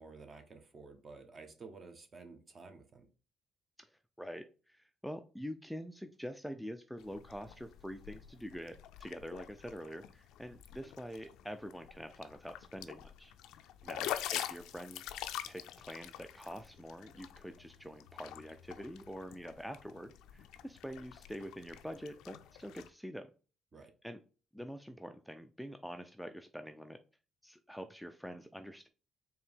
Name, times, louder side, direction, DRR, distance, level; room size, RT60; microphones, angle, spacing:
voice 1, 0.0-3.1 13.8-14.1 23.7-23.9, right 4 dB, 40° right, 1.0 m, -52 dB
voice 2, 4.2-13.3 13.9-15.1 15.5-23.3 24.0-24.2 24.5-27.0 27.4-28.9, equal, ahead, 0.3 m, -46 dB
sound 1, 7.0-22.9, left 11 dB, 85° left, 0.4 m, -46 dB
4.5 x 2.8 x 3.5 m
cardioid pair, 90°, 0 cm